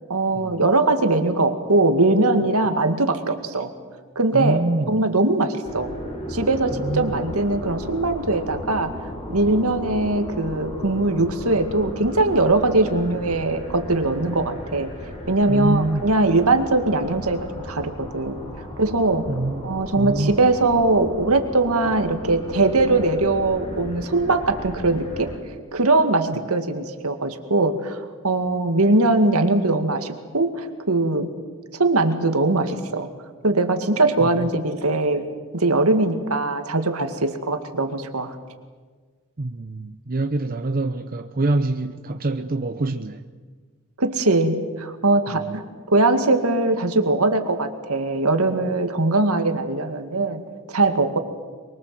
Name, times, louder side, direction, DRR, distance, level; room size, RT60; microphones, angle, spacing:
voice 1, 0.1-3.7 4.2-4.6 4.9-5.9 6.3-8.9 9.3-14.9 15.3-18.4 18.8-19.3 19.6-25.3 25.7-31.3 31.8-33.1 33.4-38.4 44.0-45.6 45.9-50.4 50.7-51.2, right 2 dB, 75° right, 2.2 m, -21 dB
voice 2, 4.3-5.0 6.7-7.1 15.5-16.1 19.3-20.3 34.2-34.5 39.4-43.2 45.3-45.6, right 2 dB, 40° right, 0.8 m, -25 dB
sound 1, 5.6-25.4, equal, 30° left, 3.6 m, -35 dB
23.5 x 23.5 x 7.7 m
head